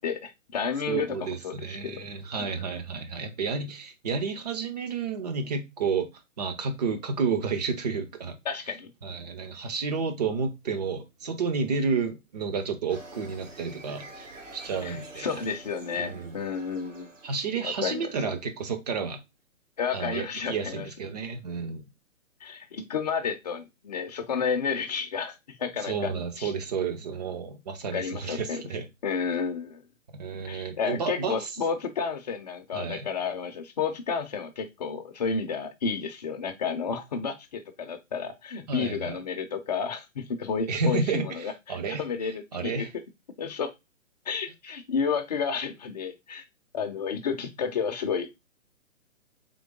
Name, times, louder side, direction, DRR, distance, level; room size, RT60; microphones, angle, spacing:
voice 1, 0.0-2.0 2.4-2.5 8.4-8.9 14.8-17.1 17.6-18.1 19.8-20.9 22.4-26.1 26.4-26.5 27.9-28.6 29.0-29.8 30.5-42.9 43.4-43.7 44.3-46.4 46.7-48.3, left 6 dB, 30° left, 0.6 m, -31 dB
voice 2, 0.9-6.1 6.4-8.4 9.0-15.4 16.0-16.4 17.2-19.2 19.9-21.8 25.8-28.9 30.1-31.5 32.7-33.1 38.7-39.2 40.7-42.1 42.5-42.9, right 5 dB, 30° right, 0.7 m, -31 dB
sound 1, 12.9-18.5, right 2 dB, 70° right, 1.3 m, -47 dB
3.8 x 3.4 x 3.6 m
figure-of-eight pair, 130°, 39 cm